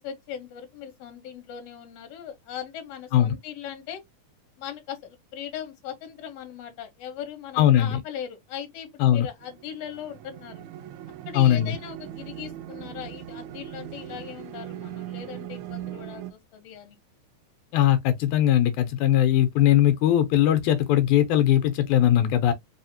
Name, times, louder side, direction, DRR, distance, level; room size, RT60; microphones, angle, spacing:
voice 1, 0.0-4.0 4.6-10.6 11.3-17.0, left 9 dB, 65° left, 2.0 m, -39 dB
voice 2, 7.6-8.0 9.0-9.3 11.3-11.7 17.7-22.5, left 11 dB, 90° left, 2.1 m, -20 dB
sound 1, 9.4-16.3, right 12 dB, 80° right, 1.7 m, -39 dB
4.9 x 2.7 x 2.7 m
omnidirectional pair, 3.5 m